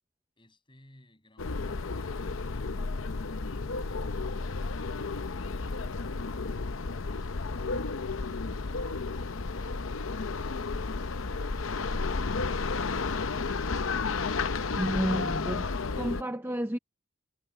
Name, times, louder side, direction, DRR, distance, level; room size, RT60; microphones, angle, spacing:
voice 1, 0.4-3.0, equal, 25° left, 7.3 m, -62 dB
sound 1, 1.4-16.2, left 4 dB, 65° left, 0.7 m, -32 dB
voice 2, 14.8-16.8, right 1 dB, 10° right, 0.7 m, -31 dB
head